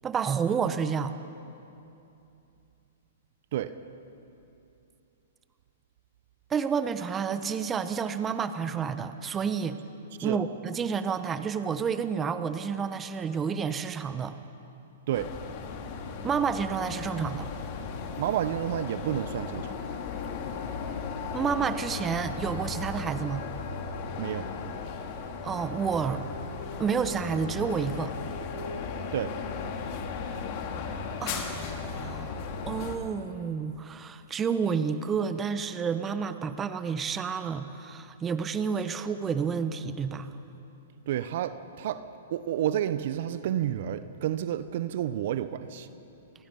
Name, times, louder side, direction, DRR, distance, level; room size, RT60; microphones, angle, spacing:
voice 1, 0.0-1.1 6.5-9.8 10.2-14.4 16.2-17.5 21.3-23.4 25.4-26.2 26.8-28.1 31.2-32.3 32.7-40.4, right 6 dB, 20° right, 11 dB, 1.1 m, -30 dB
sound 1, 15.1-33.0, left 5 dB, 45° left, 2.8 m, -36 dB
voice 2, 18.2-19.7 24.2-24.5 29.1-29.3 41.1-42.0 42.3-45.9, right 11 dB, 60° right, 12 dB, 1.0 m, -30 dB
28.5 x 22.5 x 5.6 m, 2.8 s
hypercardioid pair, 120°, 0 cm